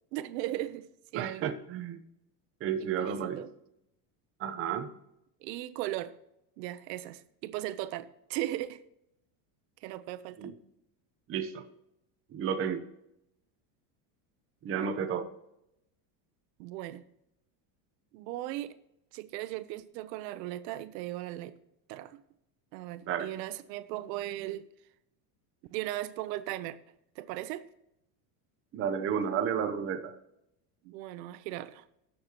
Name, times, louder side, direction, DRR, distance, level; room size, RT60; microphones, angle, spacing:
voice 1, 0.1-0.9 1.1-1.5 2.8-3.5 5.4-6.1 6.6-8.8 9.8-10.5 16.6-17.0 18.1-18.7 19.1-21.5 21.9-22.2 22.7-24.7 25.7-26.8 27.2-27.6 30.8-31.8, right 15 dB, 85° right, 0.8 m, -37 dB
voice 2, 1.1-2.0 2.6-3.4 4.4-4.9 10.4-10.5 11.3-11.6 12.3-12.8 14.6-15.3 23.1-23.3 28.7-30.1, right 7 dB, 25° right, 0.7 m, -32 dB
17.5 x 6.7 x 2.9 m
cardioid pair, 160°, 49 cm